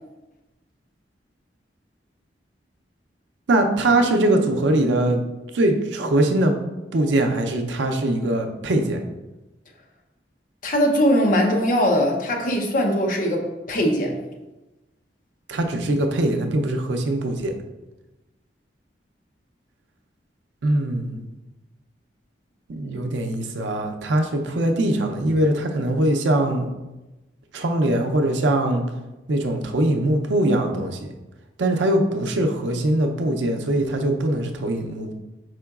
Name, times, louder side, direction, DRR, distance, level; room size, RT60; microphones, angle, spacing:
voice 1, 3.5-5.2 5.5-6.5 6.9-9.0 15.5-17.5 20.6-21.2 22.7-26.7 27.5-28.8 29.3-31.1 31.6-35.1, right 1 dB, 85° right, 5 dB, 0.5 m, -22 dB
voice 2, 10.6-14.2, equal, 45° left, 2 dB, 0.6 m, -21 dB
4.9 x 3.8 x 2.3 m, 1.1 s
head